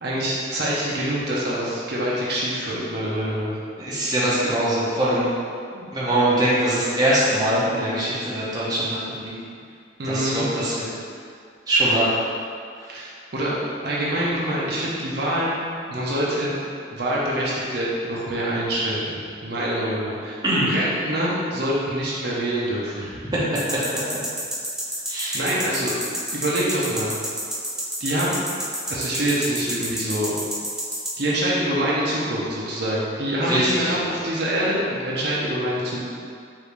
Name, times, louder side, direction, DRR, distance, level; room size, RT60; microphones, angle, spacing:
voice 1, 0.0-3.5 5.7-5.9 10.0-10.5 12.9-15.5 15.9-16.6 16.9-20.4 20.7-23.1 25.3-25.9 26.3-27.1 28.0-28.4 28.9-30.4 31.2-36.0, right 1 dB, 55° right, -6 dB, 0.7 m, -25 dB
voice 2, 3.8-5.3 5.9-9.3 10.0-10.9 11.7-12.1 12.8-13.0 20.4-20.7 23.3-23.6 25.1-25.5 33.4-33.9, right 1 dB, 20° right, -9 dB, 0.8 m, -22 dB
sound 1, 23.5-31.1, equal, 5° right, 0.4 m, -28 dB
5.0 x 2.7 x 3.3 m, 2.2 s
head